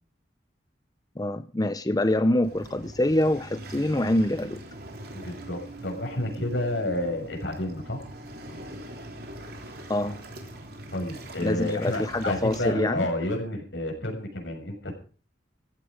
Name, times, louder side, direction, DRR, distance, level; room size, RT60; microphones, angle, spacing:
voice 1, 1.2-4.6 9.9-10.2 11.4-13.1, left 1 dB, 20° left, 12 dB, 0.6 m, -25 dB
Waves surf, 2.4-12.7, right 1 dB, 55° right, 3.5 m, -42 dB
voice 2, 5.1-8.0 10.9-14.9, left 1 dB, 85° left, 2 dB, 6.5 m, -30 dB
16.0 x 13.5 x 5.1 m, 0.40 s
head